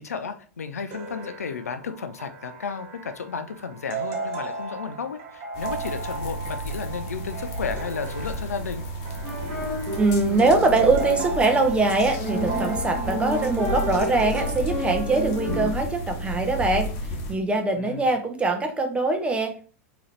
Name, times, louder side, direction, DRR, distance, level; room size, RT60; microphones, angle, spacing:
voice 1, 0.0-8.8 17.7-18.2, left 5 dB, 80° left, 9 dB, 0.5 m, -33 dB
sound 1, 0.9-14.6, right 3 dB, 50° right, 1.2 m, -36 dB
sound 2, 5.5-17.3, equal, 45° left, 1.0 m, -32 dB
sound 3, 9.2-15.7, equal, 10° left, 1.7 m, -32 dB
voice 2, 10.0-16.9 17.3-19.7, right 3 dB, 15° right, 4 dB, 0.8 m, -22 dB
3.8 x 2.9 x 3.2 m, 0.41 s
hypercardioid pair, 95°, 8 cm